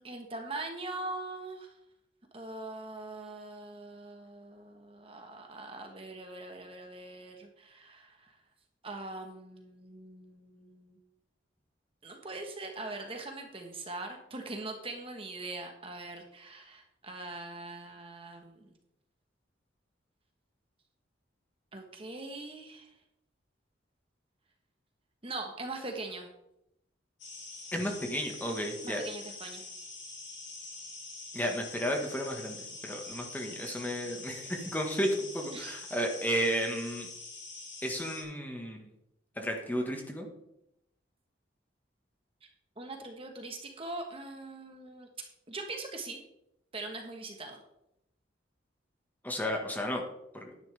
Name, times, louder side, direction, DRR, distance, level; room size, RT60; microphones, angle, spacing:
voice 1, 0.0-1.7 2.3-8.4 8.8-11.0 12.0-18.7 21.7-22.9 25.2-26.3 28.8-29.7 35.5-35.8 42.8-45.1 45.5-46.2 46.7-47.6, right 2 dB, 30° right, 3 dB, 1.3 m, -42 dB
sound 1, 27.2-38.2, left 3 dB, 65° left, 3.5 m, -45 dB
voice 2, 27.7-29.0 31.3-37.1 37.8-38.9 39.4-40.3 49.2-50.0, equal, 10° left, 1 dB, 1.5 m, -33 dB
10.5 x 10.5 x 3.5 m, 0.82 s
head